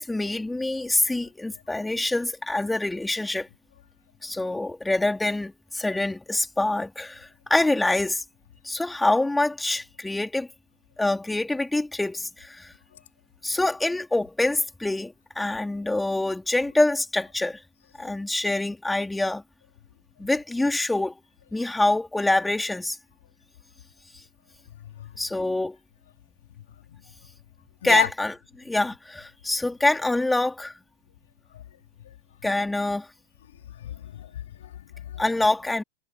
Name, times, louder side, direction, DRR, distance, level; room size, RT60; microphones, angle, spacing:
voice 1, 0.0-3.5 4.2-8.2 8.6-10.5 11.0-12.7 13.4-17.6 18.0-19.4 20.2-21.1 21.5-23.0 25.2-25.8 27.8-28.4 28.6-30.7 32.4-33.1 35.2-35.8, left 2 dB, 5° left, 4.2 m, -25 dB
voice 2, 24.8-25.1 26.9-27.0 27.8-28.1 33.8-35.2, left 11 dB, 60° left, 3.8 m, -33 dB
figure-of-eight pair, 90°, 0 cm